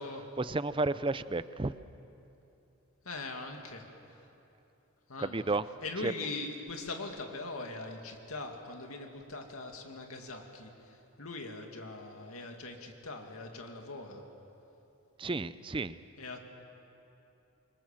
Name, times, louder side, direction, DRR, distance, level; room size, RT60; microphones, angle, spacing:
voice 1, 0.4-1.7 5.2-5.7 6.0-6.1 15.2-16.0, right 3 dB, 20° right, 15 dB, 0.5 m, -32 dB
voice 2, 3.0-3.9 5.1-5.4 5.8-14.2 16.2-16.4, left 3 dB, 75° left, 3 dB, 2.4 m, -41 dB
27.0 x 23.5 x 7.5 m, 2.9 s
head